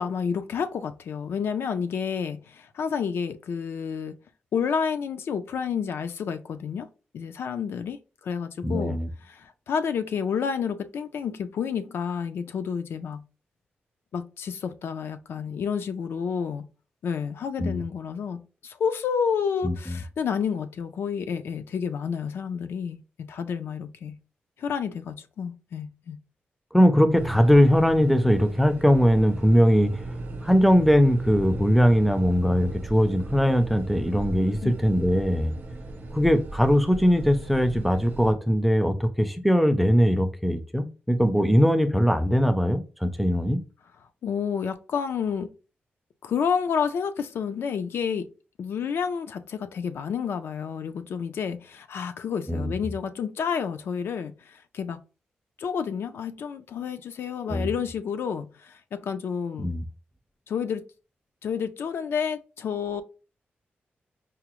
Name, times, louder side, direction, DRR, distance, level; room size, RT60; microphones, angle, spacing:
voice 1, 0.0-4.1 4.5-6.9 7.1-13.2 14.1-16.7 17.0-18.4 18.6-24.2 24.6-26.2 34.6-34.7 44.2-45.5 46.2-48.3 48.6-55.0 55.6-59.7 60.5-60.8 61.4-63.0, left 6 dB, 75° left, 0.4 m, -30 dB
voice 2, 8.6-9.1 17.6-17.8 19.6-20.0 26.7-29.9 30.4-35.5 36.1-43.6 52.5-52.7 57.5-57.7 59.6-59.8, equal, ahead, 0.4 m, -21 dB
sound 1, 27.1-38.3, right 2 dB, 55° right, 0.6 m, -37 dB
4.8 x 2.0 x 2.9 m
wide cardioid pair, 155°, 4 cm